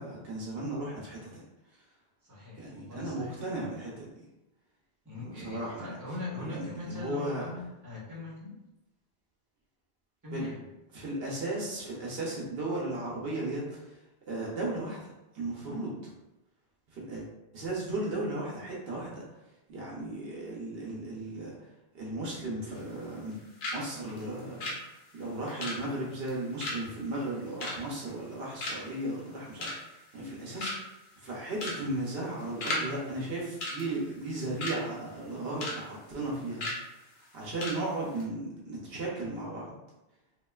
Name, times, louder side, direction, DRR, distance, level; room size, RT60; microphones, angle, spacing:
voice 1, 0.0-1.4 2.6-4.1 5.2-6.0 6.4-7.4 10.3-10.5 10.9-13.9 14.3-15.0 15.3-15.9 16.9-17.2 17.5-19.2 19.7-21.5 21.9-23.4 23.7-24.7 25.1-30.7 31.2-36.7 37.3-39.7, right 2 dB, 70° right, -4 dB, 0.9 m, -35 dB
voice 2, 2.2-3.3 5.0-8.6 10.2-10.6, left 2 dB, 20° right, -7 dB, 0.9 m, -41 dB
sound 1, 22.7-23.3 23.6-23.8 24.1-28.3 28.6-29.0 29.4-30.0 30.3-30.4 30.6-31.0 31.5-31.8 32.1-32.9 33.1-33.3 33.6-34.8 35.2-35.8 36.1-36.2 36.6-36.8 37.2-37.3 37.6-37.8 38.1-38.2, left 2 dB, 60° left, 0.8 m, -35 dB
3.0 x 2.4 x 2.3 m, 0.96 s
omnidirectional pair, 1.0 m